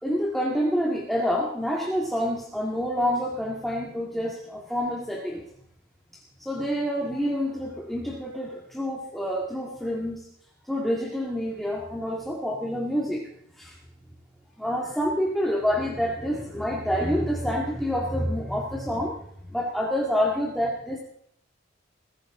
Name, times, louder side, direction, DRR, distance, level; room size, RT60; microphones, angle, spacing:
voice 1, 0.0-5.5 6.1-10.3 10.7-13.3 13.5-13.8 14.6-19.2 19.5-21.0, equal, ahead, -3 dB, 2.1 m, -27 dB
22.0 x 15.5 x 3.9 m, 0.69 s
head